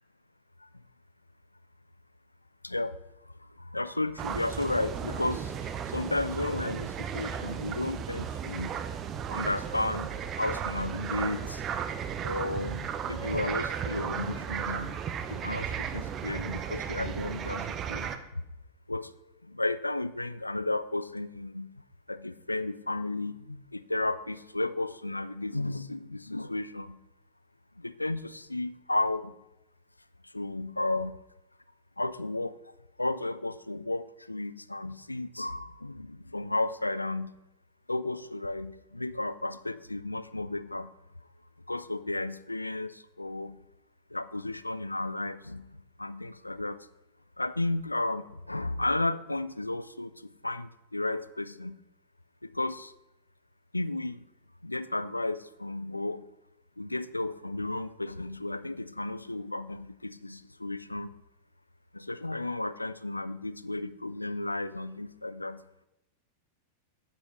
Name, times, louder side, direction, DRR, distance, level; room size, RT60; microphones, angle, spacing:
voice 1, 2.6-2.9 3.6-8.8 9.3-10.1 10.4-11.6 12.2-14.9 15.3-18.2 18.9-19.1 19.5-21.7 22.1-27.0 27.8-29.3 30.3-31.2 32.0-32.5 33.0-37.3 37.9-40.9 41.7-43.6 44.1-45.6 46.0-46.8 47.4-50.1 50.4-51.8 52.4-52.9 53.7-54.2 54.6-56.2 56.8-61.1 61.9-65.6, left 2 dB, 85° left, 16 dB, 0.3 m, -33 dB
sound 1, 4.2-18.2, right 8 dB, 30° right, 0.6 m, -35 dB
9.8 x 8.3 x 3.1 m, 0.94 s
figure-of-eight pair, 90°, 0 cm